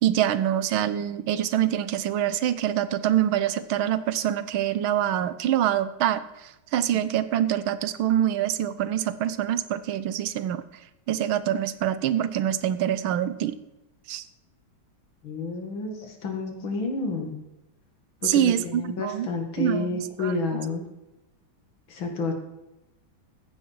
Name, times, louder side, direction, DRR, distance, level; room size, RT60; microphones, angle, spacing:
voice 1, 0.0-10.6 11.1-13.5 14.1-14.2 18.2-19.3 19.6-20.6, right 11 dB, 90° right, 14 dB, 1.6 m, -25 dB
voice 2, 15.2-17.3 18.2-20.8 21.9-22.3, left 3 dB, 75° left, 3 dB, 2.9 m, -30 dB
14.5 x 10.0 x 4.7 m, 0.96 s
omnidirectional pair, 2.2 m